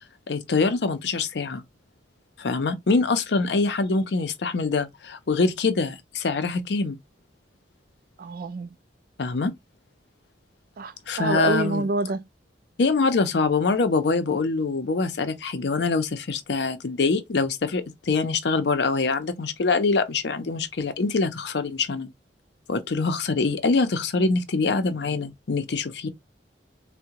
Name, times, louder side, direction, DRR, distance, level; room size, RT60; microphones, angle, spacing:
voice 1, 0.3-1.6 2.4-7.0 9.2-9.5 11.1-11.8 12.8-22.1 22.7-26.1, left 4 dB, 65° left, 0.5 m, -24 dB
voice 2, 8.2-8.7 10.8-12.2, right 3 dB, 50° right, 0.3 m, -27 dB
3.5 x 2.1 x 2.8 m
head